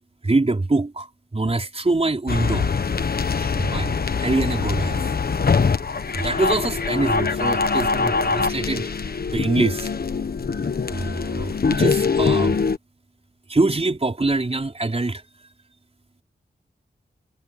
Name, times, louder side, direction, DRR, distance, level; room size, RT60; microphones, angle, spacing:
voice 1, 0.2-1.1 1.3-2.7 3.6-5.0 6.1-8.9 9.3-9.9 10.9-12.6 13.5-15.2, right 2 dB, 35° right, 4.3 m, -24 dB
sound 1, 2.3-12.8, left 5 dB, 60° left, 1.3 m, -23 dB
wide cardioid pair, 70°, 18 cm